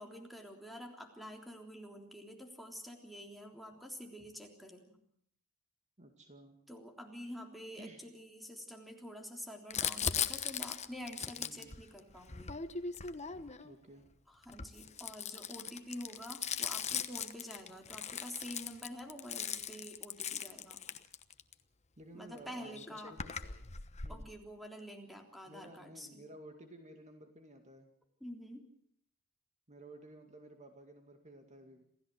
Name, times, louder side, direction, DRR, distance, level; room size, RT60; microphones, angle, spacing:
voice 1, 0.0-5.0 6.7-12.6 14.3-20.8 22.1-23.2 24.1-26.2 28.2-28.7, equal, ahead, 1 dB, 3.5 m, -48 dB
voice 2, 6.0-6.6 7.8-8.0 11.4-11.7 13.6-14.0 22.0-23.3 24.0-24.3 25.5-27.9 29.7-31.8, right 1 dB, 30° right, 5 dB, 2.2 m, -54 dB
Crumpling crinkling, 9.7-13.7 14.4-21.5 22.4-22.5 22.6-24.2, left 7 dB, 30° left, 1.1 m, -39 dB
27.5 x 15.5 x 7.9 m, 0.68 s
head